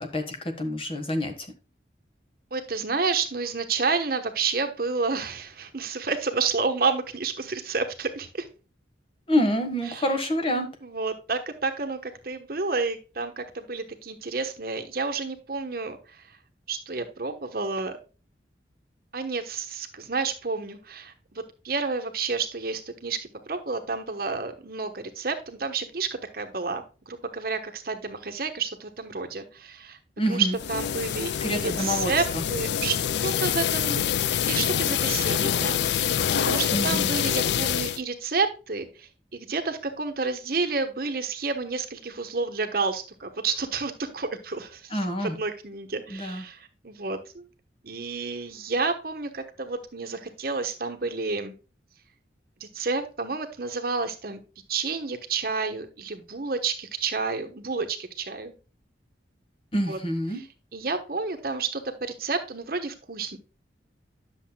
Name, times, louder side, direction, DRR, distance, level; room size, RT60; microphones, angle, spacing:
voice 1, 0.0-1.3 9.3-10.7 30.2-30.6 31.4-32.4 36.7-37.1 44.9-45.4 46.1-46.4 59.7-60.4, equal, 30° left, 5 dB, 1.3 m, -27 dB
voice 2, 2.5-8.5 9.9-10.1 10.8-16.4 16.7-18.0 19.1-30.0 30.3-34.0 34.4-47.5 47.8-51.5 52.6-54.4 54.7-58.5 59.9-60.0 60.3-60.5 60.7-63.4, right 4 dB, 50° right, 7 dB, 1.1 m, -30 dB
sound 1, 30.5-38.0, left 9 dB, 70° left, 0.4 m, -26 dB
10.5 x 7.0 x 2.2 m, 0.34 s
head